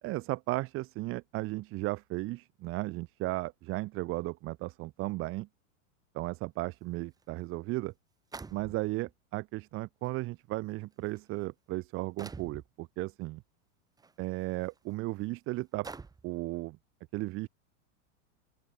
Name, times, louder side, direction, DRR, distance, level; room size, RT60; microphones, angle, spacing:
voice 1, 0.0-5.5 6.1-7.9 8.5-13.4 14.2-15.9 16.2-16.8 17.1-17.5, right 20 dB, 35° right, 1.2 m, -35 dB
sound 1, 7.2-7.3 8.3-9.1 10.0-10.1 10.9-11.2 12.2-12.7 14.0-14.1 14.7-14.8 15.8-16.4, right 4 dB, 10° right, 2.8 m, -45 dB
open air
supercardioid pair, 150°, 39 cm